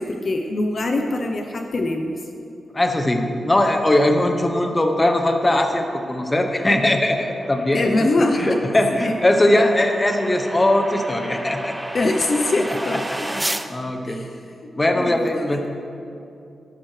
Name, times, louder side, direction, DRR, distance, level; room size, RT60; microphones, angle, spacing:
voice 1, 0.0-2.1 7.7-8.6 8.9-9.1 11.9-13.3 14.1-14.4 15.0-15.7, left 2 dB, 50° left, 3 dB, 0.7 m, -23 dB
voice 2, 2.7-8.1 8.4-11.8 12.9-14.2 14.7-15.6, left 1 dB, 20° left, 4 dB, 0.9 m, -20 dB
sound 1, 5.3-13.7, right 1 dB, 10° right, 0.5 m, -34 dB
13.5 x 10.5 x 3.3 m, 2.6 s
cardioid pair, 90°, 0 cm